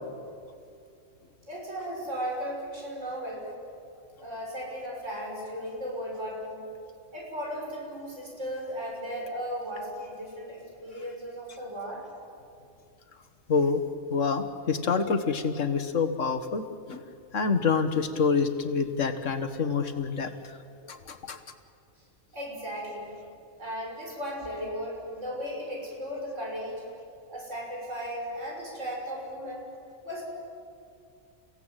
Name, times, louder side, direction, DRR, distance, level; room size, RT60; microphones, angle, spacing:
voice 1, 1.5-3.5 4.2-6.7 7.1-12.0 22.3-23.1 23.6-26.8 27.3-29.6 30.1-30.2, equal, 75° right, -2 dB, 6.9 m, -36 dB
voice 2, 13.5-13.8 14.1-17.0 17.3-20.3 20.9-21.4, left 5 dB, 75° left, 7 dB, 1.9 m, -27 dB
30.0 x 17.0 x 9.1 m, 2.4 s
omnidirectional pair, 1.3 m